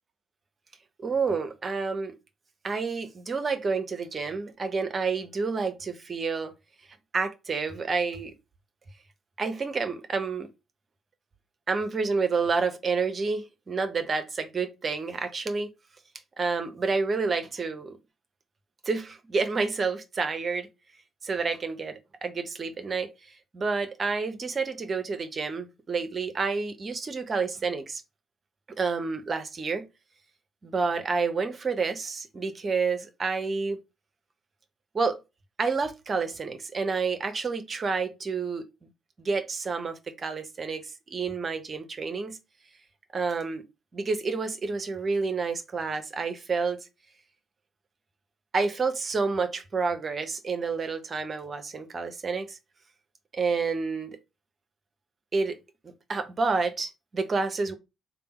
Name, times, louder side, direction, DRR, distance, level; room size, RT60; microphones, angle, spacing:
voice 1, 1.0-2.1 2.6-6.5 7.1-8.3 9.4-10.5 11.7-15.7 16.4-18.0 18.8-20.7 21.2-23.1 23.5-28.0 28.8-29.9 30.6-33.8 34.9-35.2 35.6-38.7 39.2-42.4 43.1-43.6 43.9-46.8 48.5-52.6 53.3-54.2 55.3-55.6 55.8-57.7, right 4 dB, 35° right, 0.8 m, -29 dB
3.5 x 2.2 x 4.3 m
figure-of-eight pair, 40°, 0 cm